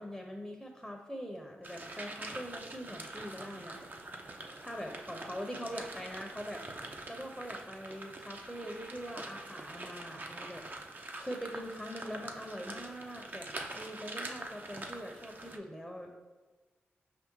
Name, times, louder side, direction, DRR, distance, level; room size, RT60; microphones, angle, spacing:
voice 1, 0.0-3.8 4.6-10.6 10.9-13.5 13.7-16.2, equal, ahead, 2 dB, 0.7 m, -43 dB
sound 1, 1.6-15.6, right 2 dB, 40° right, 0.6 m, -45 dB
4.9 x 3.5 x 3.1 m, 1.3 s
supercardioid pair, 40°, 5 cm